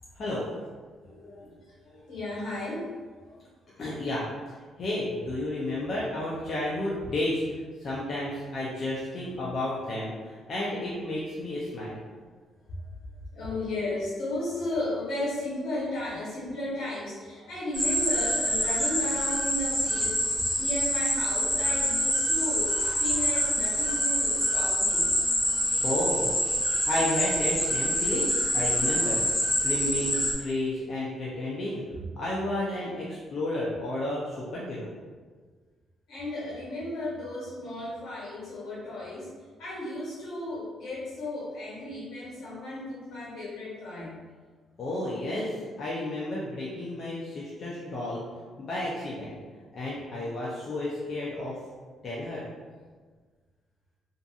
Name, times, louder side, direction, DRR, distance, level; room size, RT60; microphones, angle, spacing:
voice 1, 0.1-0.5 3.8-4.3 4.8-12.0 25.8-26.3 26.8-29.2 29.6-31.8 32.2-34.9 44.8-48.2 48.6-49.4 49.7-51.5 52.0-52.4, left 1 dB, 50° left, -6 dB, 0.5 m, -32 dB
voice 2, 1.0-3.5 8.2-8.3 13.3-25.1 36.1-39.3 39.6-44.2, left 1 dB, 80° left, -7 dB, 1.3 m, -35 dB
sound 1, 17.7-30.3, equal, 20° left, 1.0 m, -26 dB
2.6 x 2.5 x 2.4 m, 1.5 s
cardioid pair, 90°, 0 cm